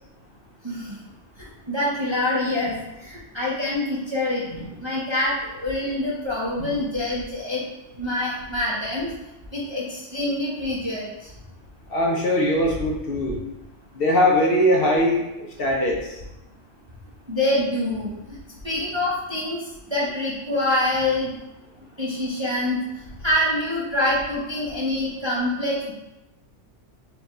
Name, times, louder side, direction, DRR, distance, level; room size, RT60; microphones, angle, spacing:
voice 1, 0.6-1.0 1.4-4.4 4.8-7.6 8.0-9.1 9.5-11.3 17.3-18.4 18.6-21.3 22.0-22.8 23.2-25.9, left 1 dB, 30° right, -6 dB, 0.5 m, -25 dB
voice 2, 11.9-13.4 14.0-16.2, left 1 dB, 60° left, -1 dB, 0.7 m, -21 dB
5.2 x 2.3 x 2.9 m, 0.96 s
omnidirectional pair, 1.3 m